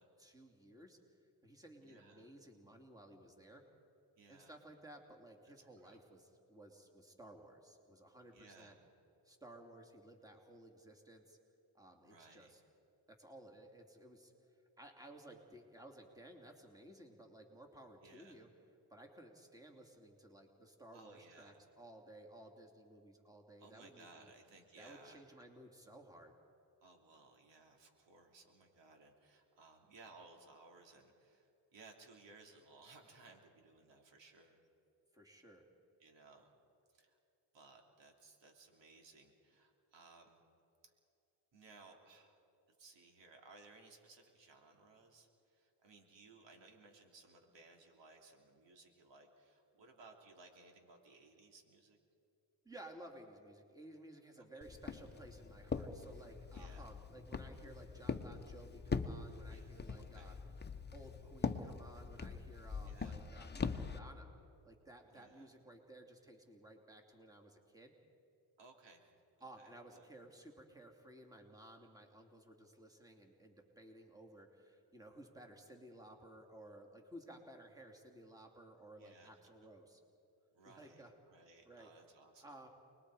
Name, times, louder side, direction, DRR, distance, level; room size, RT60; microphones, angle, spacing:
voice 1, 0.2-3.6 4.3-8.8 9.2-11.4 11.7-12.6 13.1-14.3 14.8-18.5 18.9-24.3 24.8-26.3 35.1-35.7 52.6-60.3 60.9-64.3 64.6-67.9 69.4-80.0 80.6-81.1 81.7-81.9 82.4-82.7, right 1 dB, 10° right, 2 dB, 2.9 m, -57 dB
voice 2, 1.8-2.3 4.2-4.5 5.4-6.0 8.3-8.7 12.0-12.5 18.0-18.4 20.9-21.6 23.6-25.2 26.8-34.6 36.0-36.5 36.9-37.2 37.5-40.4 40.8-40.9 41.5-42.4 42.8-52.0 54.4-54.6 56.5-56.9 59.5-60.4 62.8-63.3 65.1-65.5 68.6-69.0 69.4-70.1 79.0-79.5 80.5-82.6, right 3 dB, 70° right, 2 dB, 3.2 m, -61 dB
Walk footsteps, 54.6-64.0, left 4 dB, 20° left, 1.2 m, -43 dB
29.0 x 21.0 x 5.0 m, 2.7 s
cardioid pair, 90°, 46 cm